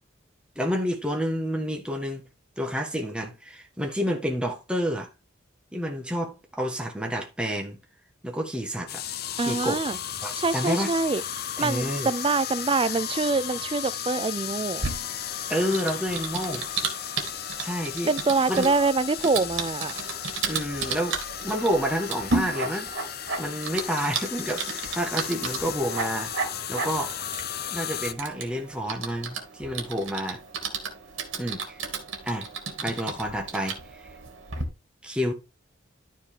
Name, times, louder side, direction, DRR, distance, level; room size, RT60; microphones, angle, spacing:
voice 1, 0.5-2.2 2.6-5.1 5.7-7.8 8.2-9.0 9.4-10.0 10.2-10.9 11.6-12.1 15.5-16.7 17.6-18.1 18.5-18.7 20.5-22.9 23.4-26.3 26.7-27.1 27.7-30.4 31.4-31.8 32.2-32.5 32.8-34.1 35.0-35.3, equal, 5° right, 1.6 m, -29 dB
sound 1, 8.9-28.1, left 9 dB, 50° left, 0.7 m, -35 dB
voice 2, 9.4-10.0 10.4-11.2 11.6-14.8 18.1-19.9, right 3 dB, 25° right, 0.4 m, -25 dB
Typing, 14.8-34.6, right 4 dB, 75° right, 2.5 m, -34 dB
13.0 x 4.5 x 3.7 m
head